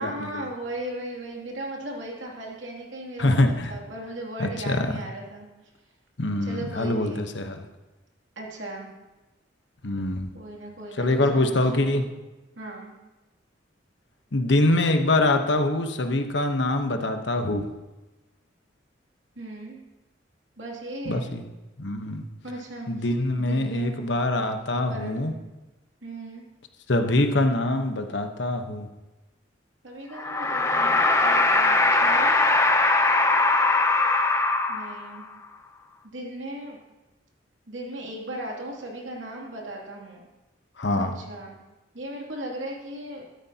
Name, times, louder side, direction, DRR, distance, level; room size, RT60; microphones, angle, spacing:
voice 1, 0.0-5.5 6.5-7.2 8.4-8.9 10.3-11.9 12.6-12.9 19.4-19.8 20.6-21.2 22.4-23.1 23.5-24.0 24.6-25.4 26.0-26.4 29.8-32.4 34.7-35.3 36.0-36.8 37.7-40.2 41.0-41.6 41.9-43.2, right 1 dB, 85° right, -2 dB, 2.7 m, -37 dB
voice 2, 3.2-3.7 4.4-5.0 6.2-7.6 9.8-10.3 11.0-12.0 14.3-17.7 21.1-21.4 21.8-22.3 22.9-25.3 26.9-28.9 40.8-41.1, left 2 dB, 70° left, 6 dB, 1.1 m, -24 dB
sound 1, 30.1-35.2, left 2 dB, 15° left, 0.7 m, -21 dB
14.0 x 13.0 x 2.9 m, 1.1 s
head